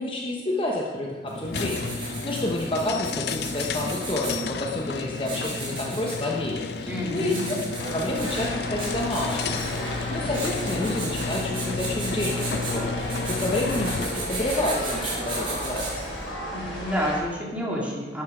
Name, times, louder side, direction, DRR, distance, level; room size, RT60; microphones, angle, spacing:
voice 1, 0.0-7.6 7.9-16.1, left 1 dB, 30° left, -1 dB, 1.0 m, -29 dB
Writing, 1.3-16.2, right 2 dB, 30° right, 3.5 m, -36 dB
sound 1, 1.5-14.3, left 5 dB, 60° left, 0.4 m, -32 dB
voice 2, 6.9-7.5 16.5-18.2, equal, 5° right, -4 dB, 2.2 m, -29 dB
sound 2, 7.8-17.2, equal, 80° left, 4.6 m, -34 dB
12.5 x 9.2 x 5.0 m, 1.4 s
head